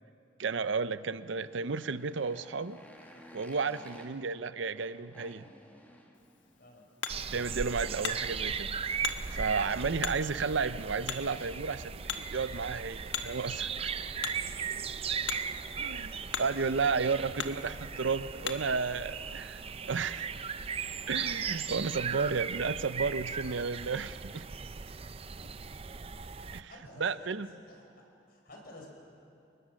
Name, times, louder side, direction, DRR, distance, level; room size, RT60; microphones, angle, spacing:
voice 1, 0.4-2.8 3.3-5.4 7.3-8.7 9.3-13.9 15.8-16.1 16.4-19.6 19.9-20.3 21.1-24.5 26.5-26.7 27.0-27.5, right 5 dB, 70° right, 14 dB, 0.6 m, -32 dB
Motorcycle, 1.2-7.8, equal, 10° left, 2.0 m, -55 dB
Hammer, 6.1-18.8, left 7 dB, 75° left, 1.2 m, -42 dB
sound 1, 7.1-26.6, right 6 dB, 30° right, 0.5 m, -37 dB
voice 2, 13.6-14.1 14.8-15.2 15.8-16.0 16.6-17.6 26.7-27.8 28.3-28.9, left 1 dB, 50° left, 0 dB, 5.4 m, -53 dB
29.0 x 20.5 x 6.4 m, 2.6 s
head